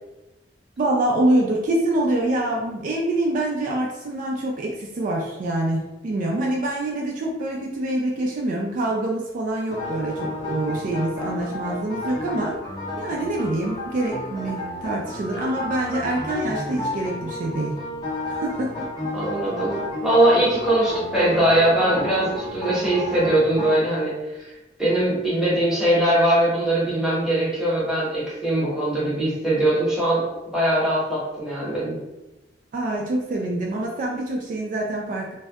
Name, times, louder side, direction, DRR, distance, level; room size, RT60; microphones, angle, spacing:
voice 1, 0.8-12.6 13.0-17.8 18.4-18.9 32.7-35.3, right 1 dB, 45° right, -1 dB, 0.3 m, -25 dB
sound 1, 9.7-23.8, left 1 dB, 25° left, 0.5 m, -32 dB
voice 2, 19.1-24.1 24.8-30.2 30.5-32.0, right 1 dB, 5° right, -8 dB, 0.8 m, -21 dB
2.6 x 2.2 x 2.2 m, 0.98 s
head